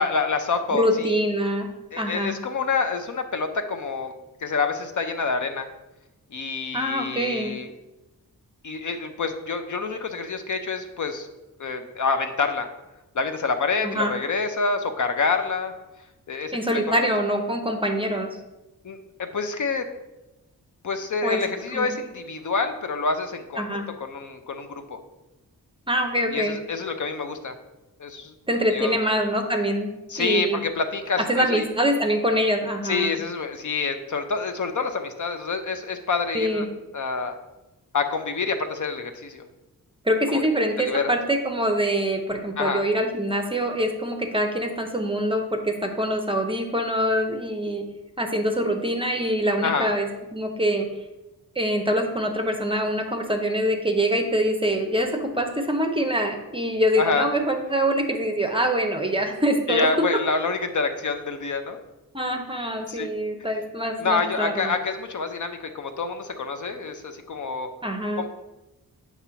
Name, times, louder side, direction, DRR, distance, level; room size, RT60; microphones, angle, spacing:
voice 1, 0.0-1.2 1.9-4.1 4.4-5.7 6.3-7.7 8.6-11.3 11.6-12.7 13.1-15.7 16.3-16.6 16.9-17.1 18.8-19.9 20.8-25.0 26.3-27.6 28.0-28.3 28.7-29.0 30.1-31.6 32.8-36.7 36.9-37.3 37.9-39.4 40.3-40.4 40.8-41.1 42.6-42.8 49.6-49.9 57.0-57.3 59.7-61.8 62.9-63.1 64.0-67.7 68.2-68.3, left 4 dB, 50° left, 7 dB, 0.5 m, -27 dB
voice 2, 0.7-1.7 2.0-2.3 6.7-7.5 13.8-14.1 16.5-18.3 21.2-21.4 21.7-21.9 23.6-23.9 25.9-26.6 28.5-30.6 31.3-33.1 36.3-36.7 40.0-47.8 48.2-50.9 51.6-60.1 62.1-64.7 67.8-68.2, equal, 15° right, 4 dB, 0.5 m, -24 dB
8.2 x 3.0 x 5.6 m, 1.0 s
wide cardioid pair, 175°, 38 cm